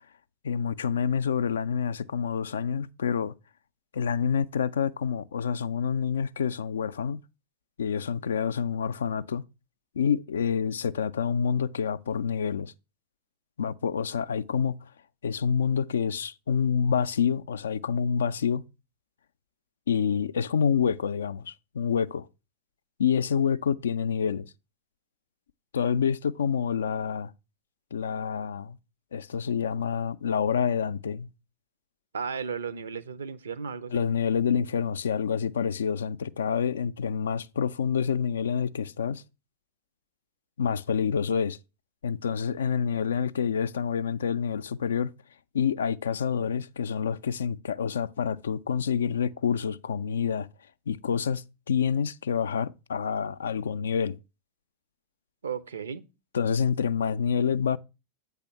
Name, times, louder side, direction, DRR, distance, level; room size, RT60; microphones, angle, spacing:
voice 1, 0.4-3.3 3.9-7.2 7.8-9.4 10.0-12.7 13.6-14.8 15.2-18.6 19.9-22.3 23.0-24.5 25.7-27.3 27.9-28.8 29.1-31.3 33.9-39.2 40.6-41.6 42.0-45.1 45.5-50.5 50.9-54.2 56.3-57.8, left 7 dB, 65° left, 0.3 m, -27 dB
voice 2, 32.1-34.0 55.4-56.1, right 6 dB, 70° right, 0.5 m, -34 dB
8.1 x 3.5 x 5.7 m
figure-of-eight pair, 90°, 0 cm